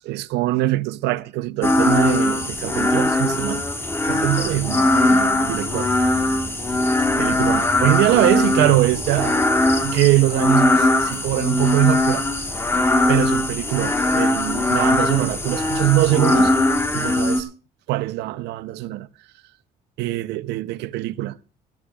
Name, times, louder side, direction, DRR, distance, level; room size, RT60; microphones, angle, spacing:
voice 1, 0.1-3.6 4.0-6.2 7.2-9.4 9.8-12.3 13.1-16.5 16.9-17.5 17.9-19.1 20.0-21.4, right 16 dB, 85° right, 0.6 m, -22 dB
sound 1, 1.6-17.4, left 2 dB, 15° left, 1.4 m, -20 dB
24.0 x 13.5 x 2.3 m
cardioid pair, 110°, 17 cm